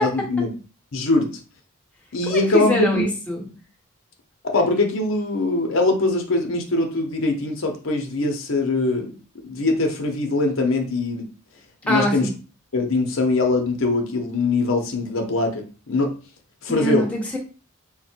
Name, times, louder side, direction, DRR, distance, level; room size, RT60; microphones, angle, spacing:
voice 1, 0.0-0.5 0.9-1.4 2.1-3.1 4.5-9.2 9.4-11.3 11.8-12.3 12.7-16.2 16.6-17.1, left 2 dB, 65° left, 3 dB, 0.7 m, -22 dB
voice 2, 2.3-3.4 11.9-12.3 16.7-17.4, equal, 5° left, -2 dB, 0.9 m, -23 dB
3.8 x 2.1 x 4.3 m, 0.35 s
head